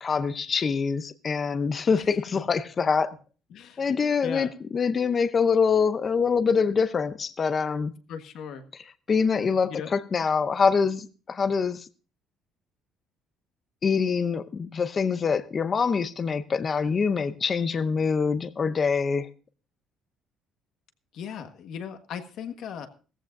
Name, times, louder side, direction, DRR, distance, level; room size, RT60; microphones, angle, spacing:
voice 1, 0.0-3.1 3.8-7.9 9.1-11.9 13.8-19.3, left 5 dB, 25° left, 0.6 m, -25 dB
voice 2, 3.5-3.8 4.2-4.5 8.1-8.7 9.7-9.9 21.1-22.9, left 7 dB, 55° left, 1.5 m, -37 dB
17.5 x 14.5 x 2.6 m
cardioid pair, 170°, 0 cm